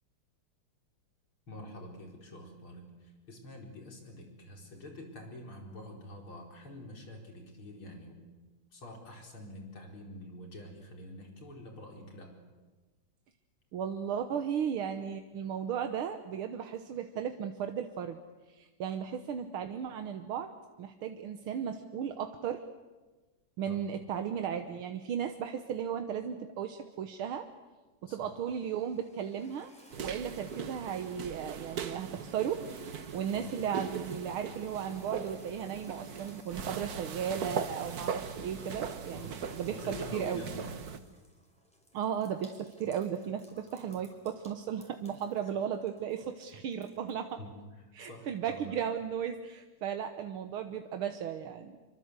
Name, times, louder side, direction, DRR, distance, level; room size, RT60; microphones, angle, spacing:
voice 1, 1.5-8.3 8.7-12.3 23.7-24.1 28.1-28.3 33.4-33.7 39.1-40.8 47.4-47.6 48.0-48.8, left 1 dB, 75° left, 2 dB, 5.5 m, -47 dB
voice 2, 13.7-18.2 18.5-20.5 20.8-22.6 23.6-27.5 28.0-32.6 33.1-40.5 41.9-47.4 47.9-51.8, right 8 dB, 80° right, 7 dB, 1.9 m, -35 dB
sound 1, 28.5-47.3, equal, 5° left, 5.5 m, -60 dB
sound 2, 29.9-41.0, right 6 dB, 50° right, 1.5 m, -40 dB
26.0 x 24.0 x 8.2 m, 1.3 s
omnidirectional pair, 2.4 m